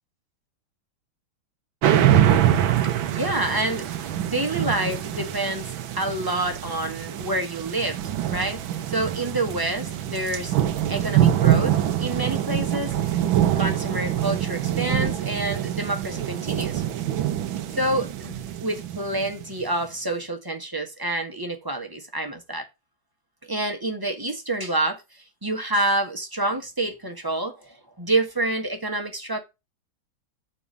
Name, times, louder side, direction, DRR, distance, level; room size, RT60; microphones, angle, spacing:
sound 1, 1.8-19.6, right 11 dB, 75° right, 1.6 m, -24 dB
voice 1, 2.8-10.5 10.9-13.3 13.6-16.8 17.7-22.7 23.5-25.0 25.4-29.4, right 2 dB, 15° right, 1.1 m, -28 dB
7.0 x 4.4 x 6.7 m
omnidirectional pair, 2.2 m